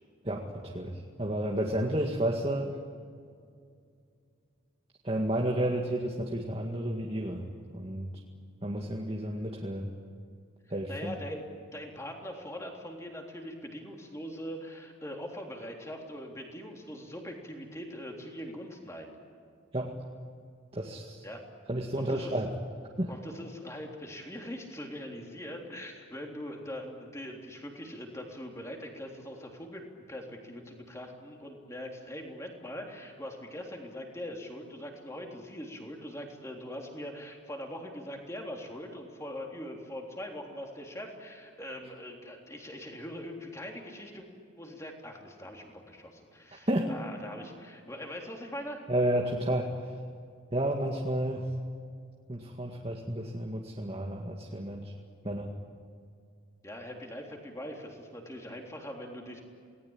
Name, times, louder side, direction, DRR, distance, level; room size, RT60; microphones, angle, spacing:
voice 1, 0.2-2.7 5.0-7.4 7.7-8.1 8.6-9.9 10.7-11.2 19.7-19.9 20.7-21.2 21.7-22.5 23.0-23.1 46.7-46.9 48.9-49.9 50.5-51.5 52.3-54.9 55.2-55.5, right 1 dB, 30° right, -1 dB, 2.0 m, -31 dB
voice 2, 10.9-19.1 21.2-21.4 22.0-22.3 23.1-44.3 44.6-48.8 56.6-59.4, equal, 15° left, 1 dB, 3.5 m, -42 dB
28.0 x 19.5 x 9.0 m, 2.3 s
head